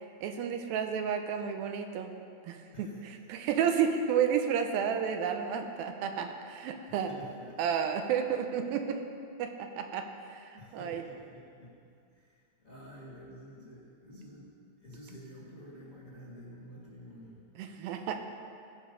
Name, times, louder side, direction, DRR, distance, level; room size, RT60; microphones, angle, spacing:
voice 1, 0.0-2.1 2.4-7.1 7.6-9.0 9.4-11.0 17.6-18.2, right 7 dB, 80° right, 5 dB, 2.3 m, -31 dB
voice 2, 6.9-8.1 10.6-11.8 12.1-14.5 14.8-17.4, equal, 65° left, -7 dB, 0.8 m, -50 dB
16.5 x 6.1 x 5.1 m, 2.4 s
omnidirectional pair, 4.7 m